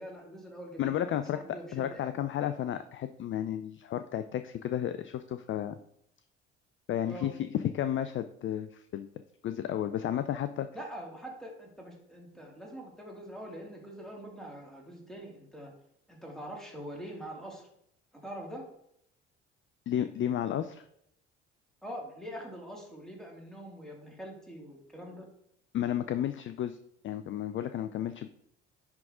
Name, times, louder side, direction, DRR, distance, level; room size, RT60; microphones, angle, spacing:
voice 1, 0.0-1.0 1.3-2.1 7.1-7.3 10.7-15.7 16.1-17.7 18.1-18.7 21.8-25.3, equal, ahead, -1 dB, 2.5 m, -44 dB
voice 2, 0.8-1.4 1.7-5.8 6.9-9.1 9.4-10.7 19.9-20.8 25.7-26.8 27.0-28.3, left 10 dB, 35° left, 11 dB, 0.4 m, -32 dB
10.5 x 3.6 x 3.7 m, 0.72 s
hypercardioid pair, 60°, 34 cm